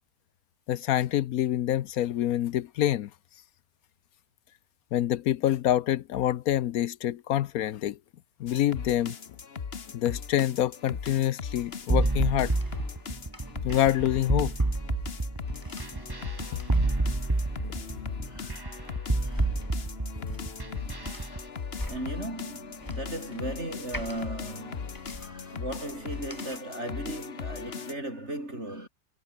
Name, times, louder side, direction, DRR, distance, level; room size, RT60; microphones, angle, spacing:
voice 1, 0.7-3.1 4.9-8.0 8.4-9.1 9.9-12.5 13.6-14.5, left 12 dB, 65° left, 1.0 m, -26 dB
sound 1, 8.5-27.9, left 6 dB, 40° left, 1.4 m, -39 dB
sound 2, 11.6-26.6, left 1 dB, 10° left, 3.1 m, -46 dB
sound 3, 11.9-21.4, right 2 dB, 15° right, 1.5 m, -29 dB
voice 2, 18.3-18.7 19.2-19.5 21.8-28.9, right 1 dB, 40° right, 8.5 m, -37 dB
omnidirectional pair, 1.8 m